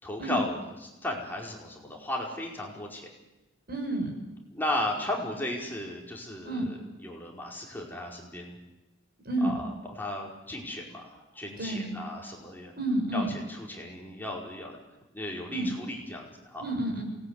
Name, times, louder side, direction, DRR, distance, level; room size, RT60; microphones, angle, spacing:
voice 1, 0.0-3.0 4.5-8.5 9.4-12.7 13.1-14.8 15.1-16.6, left 1 dB, 10° left, -1 dB, 4.9 m, -35 dB
voice 2, 3.7-4.2 6.4-6.7 9.2-9.6 11.6-12.0 12.8-13.4 15.5-15.7 16.6-17.0, right 1 dB, 55° right, 3 dB, 6.9 m, -30 dB
28.0 x 20.0 x 9.8 m, 1.0 s
head